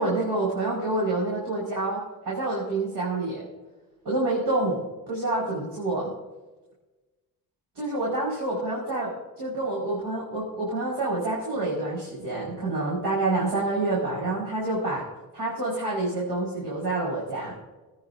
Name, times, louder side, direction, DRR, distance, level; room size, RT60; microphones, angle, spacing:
voice 1, 0.0-3.4 4.1-6.1 7.8-15.1 15.3-17.6, right 2 dB, 85° right, -5 dB, 5.2 m, -27 dB
23.5 x 9.5 x 2.7 m, 1.2 s
cardioid pair, 125°, 35 cm